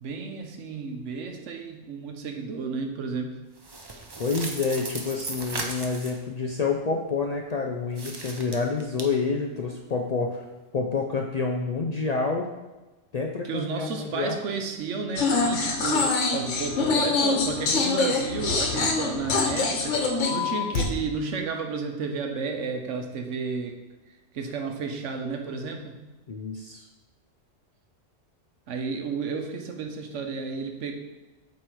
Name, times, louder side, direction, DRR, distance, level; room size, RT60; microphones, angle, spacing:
voice 1, 0.0-3.4 13.4-23.8 24.3-26.0 28.7-30.9, right 4 dB, 85° right, 4 dB, 1.1 m, -32 dB
sound 1, 3.6-6.2 7.9-9.0, right 3 dB, 30° right, 0.5 m, -36 dB
voice 2, 4.2-10.5 10.7-12.5 13.1-14.3 26.3-26.8, left 4 dB, 55° left, 1 dB, 0.4 m, -28 dB
sound 2, 15.2-20.8, left 4 dB, 80° left, 1.2 m, -25 dB
7.7 x 3.2 x 4.5 m, 1.1 s
omnidirectional pair, 1.2 m